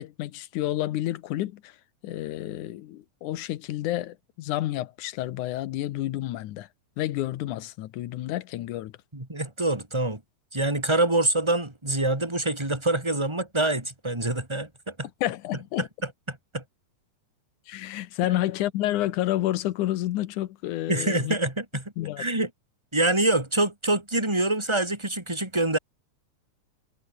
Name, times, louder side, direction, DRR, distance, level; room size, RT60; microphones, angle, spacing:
voice 1, 0.0-1.7 2.0-6.7 7.0-8.9 15.2-15.9 17.7-21.4 22.0-22.2, left 14 dB, 85° left, 2.5 m, -30 dB
voice 2, 9.1-10.2 10.5-15.1 15.8-15.9 16.3-16.6 20.9-21.8 22.2-22.5 22.9-25.8, right 2 dB, 10° right, 3.7 m, -25 dB
omnidirectional pair, 3.4 m